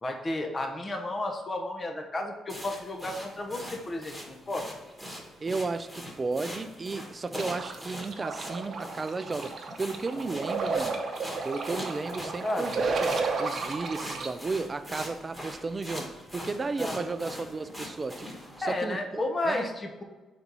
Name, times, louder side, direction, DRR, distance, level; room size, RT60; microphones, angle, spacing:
voice 1, 0.0-4.7 12.1-12.9 16.8-17.1 18.6-20.0, left 1 dB, 30° left, 0.8 m, -33 dB
sound 1, 2.5-18.7, equal, 10° left, 1.4 m, -42 dB
voice 2, 5.4-11.1 11.4-12.9 13.4-19.7, right 3 dB, 30° right, 0.4 m, -34 dB
sound 2, 7.3-14.3, right 4 dB, 50° right, 0.8 m, -32 dB
4.5 x 4.1 x 5.3 m
cardioid pair, 90°, 0 cm